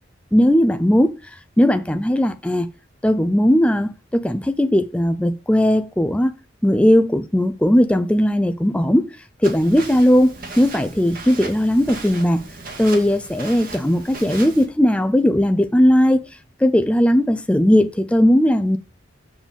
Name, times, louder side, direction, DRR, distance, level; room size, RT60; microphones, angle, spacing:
voice 1, 0.3-1.1 1.6-2.7 3.0-6.3 6.6-9.1 9.4-12.4 12.8-16.2 16.6-18.8, equal, 5° left, 0.4 m, -17 dB
Walk footsteps, 9.4-14.7, right 3 dB, 50° right, 1.9 m, -36 dB
7.4 x 7.0 x 3.5 m
head